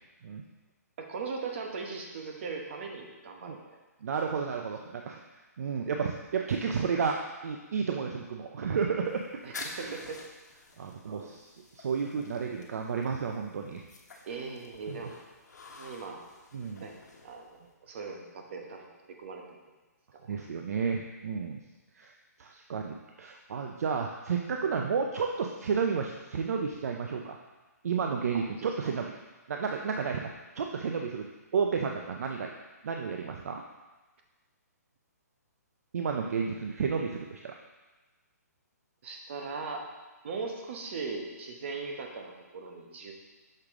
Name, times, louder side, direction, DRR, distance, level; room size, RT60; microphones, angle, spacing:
voice 1, 1.0-3.6 9.4-10.2 11.1-11.3 14.3-15.1 15.7-16.2 16.8-16.9 17.2-19.4 20.1-20.4 28.6-28.9 39.0-39.8 40.2-43.1, right 4 dB, 45° right, 2 dB, 1.0 m, -39 dB
voice 2, 4.0-5.2 5.6-7.2 7.4-10.0 10.8-11.5 11.8-13.8 14.1-14.3 14.9-15.0 16.5-16.9 20.3-21.6 22.0-22.1 22.4-27.4 27.8-29.1 29.5-30.3 30.6-31.3 31.5-32.5 32.8-33.6 35.9-37.5, right 6 dB, 60° right, 3 dB, 0.5 m, -32 dB
sound 1, 9.0-17.7, left 3 dB, 80° left, 1.1 m, -49 dB
6.6 x 4.8 x 3.6 m, 1.2 s
hypercardioid pair, 165°, 9 cm